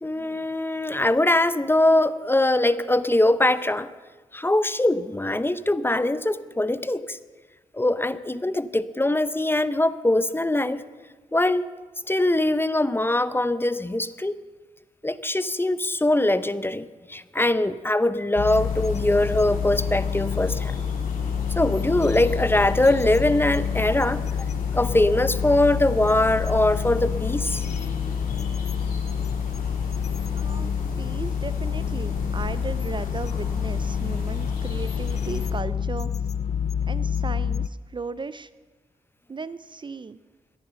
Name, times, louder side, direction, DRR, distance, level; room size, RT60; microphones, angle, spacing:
voice 1, 0.0-3.9 4.3-7.2 7.7-10.8 11.3-11.6 12.1-14.4 15.0-20.7 21.6-24.2 24.7-27.6, left 1 dB, 15° left, 14 dB, 0.7 m, -22 dB
sound 1, 18.4-37.7, left 7 dB, 50° left, 0.4 m, -28 dB
sound 2, 18.5-35.5, left 2 dB, 90° left, 3.0 m, -37 dB
voice 2, 30.3-36.1 36.9-38.5 39.3-40.2, right 4 dB, 35° right, 15 dB, 0.5 m, -36 dB
14.0 x 10.5 x 6.8 m, 1.3 s
cardioid pair, 55°, 15 cm